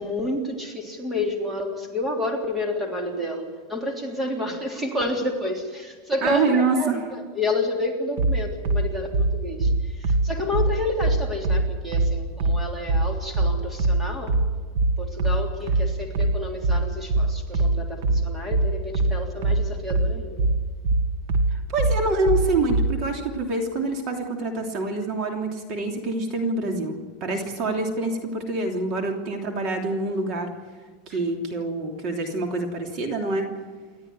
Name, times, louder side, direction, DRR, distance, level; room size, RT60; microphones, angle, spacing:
voice 1, 0.0-14.4 15.0-20.4 31.1-31.2, left 2 dB, 10° right, 2 dB, 3.3 m, -30 dB
voice 2, 6.2-7.0 21.7-30.5 31.1-33.5, right 3 dB, 40° right, 3 dB, 3.1 m, -26 dB
sound 1, 8.2-23.0, right 2 dB, 70° right, 1.8 m, -22 dB
29.0 x 13.0 x 9.7 m, 1.5 s
supercardioid pair, 160°, 0 cm